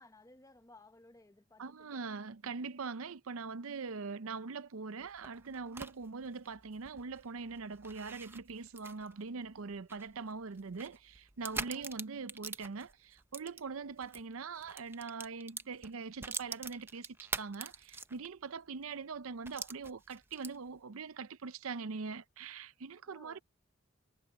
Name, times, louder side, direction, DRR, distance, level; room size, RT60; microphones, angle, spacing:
voice 1, 0.0-2.0 11.6-11.9 23.1-23.4, left 2 dB, 15° left, 0.8 m, -59 dB
voice 2, 1.6-23.4, right 4 dB, 75° right, 0.6 m, -42 dB
sound 1, 5.0-14.2 14.5-18.4 18.8-18.9 19.4-20.8, right 4 dB, 10° right, 0.5 m, -45 dB
head